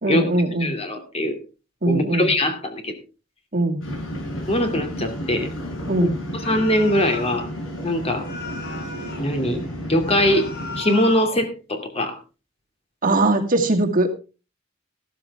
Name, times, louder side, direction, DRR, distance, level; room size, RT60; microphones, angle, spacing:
voice 1, 0.0-0.7 1.8-2.3 3.5-3.8 5.9-6.2 13.0-14.1, right 2 dB, 45° right, 2 dB, 2.3 m, -20 dB
voice 2, 0.6-1.4 1.9-2.9 4.5-5.5 6.0-7.5 7.8-8.3 9.2-9.6 9.9-10.5 10.8-12.2, left 1 dB, 30° left, 5 dB, 2.7 m, -22 dB
sound 1, 3.8-10.8, equal, 85° left, 6.5 m, -32 dB
sound 2, 6.4-7.5 8.2-9.3 10.1-11.4, left 3 dB, 55° left, 6.4 m, -35 dB
14.0 x 13.5 x 3.5 m, 0.33 s
head